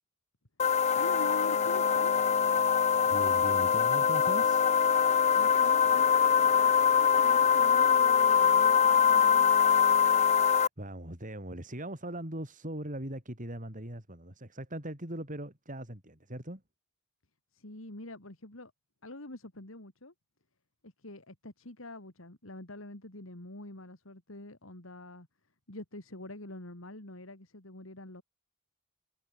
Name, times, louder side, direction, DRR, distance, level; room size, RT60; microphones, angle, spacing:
sound 1, 0.6-10.7, left 7 dB, 35° left, 0.5 m, -23 dB
voice 1, 0.9-2.3 5.3-9.5 17.5-18.7 19.0-20.1 20.8-25.3 25.7-28.2, left 2 dB, 75° left, 3.4 m, -45 dB
voice 2, 3.1-4.6 10.2-16.6, right 1 dB, 40° right, 6.6 m, -40 dB
head